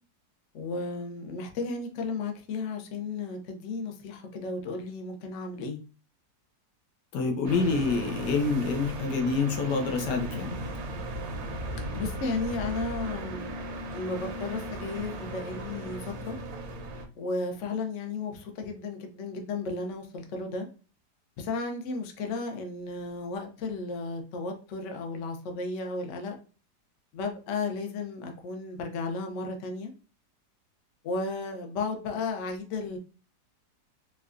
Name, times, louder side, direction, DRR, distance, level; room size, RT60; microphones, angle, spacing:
voice 1, 0.5-5.8 11.9-13.5 13.9-16.4 17.2-20.7 21.4-26.4 27.1-29.9 31.0-33.0, left 3 dB, 60° left, 4 dB, 0.8 m, -34 dB
voice 2, 7.1-10.6, left 4 dB, 85° left, 4 dB, 1.4 m, -27 dB
sound 1, 7.4-17.0, right 1 dB, 70° right, 1.1 m, -36 dB
4.6 x 2.3 x 2.4 m, 0.36 s
omnidirectional pair, 1.8 m